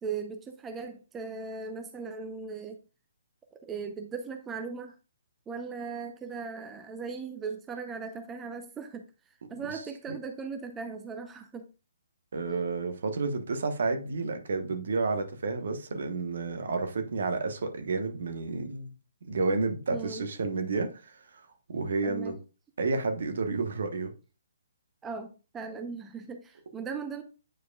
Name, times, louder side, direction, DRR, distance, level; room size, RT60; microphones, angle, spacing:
voice 1, 0.0-2.8 3.6-5.0 5.5-11.7 19.9-20.3 22.0-22.4 25.0-27.2, right 5 dB, 15° right, 0.6 m, -38 dB
voice 2, 12.3-18.9 19.2-21.4 21.7-22.4 22.8-24.1, right 3 dB, 65° right, 1.1 m, -30 dB
8.9 x 4.7 x 2.3 m
figure-of-eight pair, 135°, 0 cm